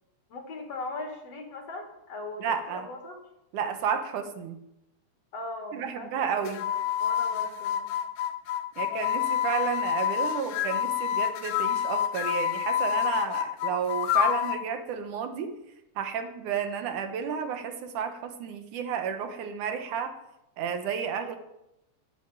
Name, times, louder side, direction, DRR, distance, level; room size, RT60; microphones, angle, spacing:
voice 1, 0.3-3.2 5.3-7.9, left 2 dB, 55° left, 3 dB, 3.1 m, -39 dB
voice 2, 2.4-2.9 3.5-4.6 5.7-6.7 8.8-15.6 16.0-20.1 20.6-21.4, right 7 dB, 80° right, 7 dB, 2.7 m, -32 dB
sound 1, 6.5-14.6, left 10 dB, 75° left, 2.1 m, -28 dB
11.0 x 8.1 x 9.1 m, 0.86 s
omnidirectional pair, 3.5 m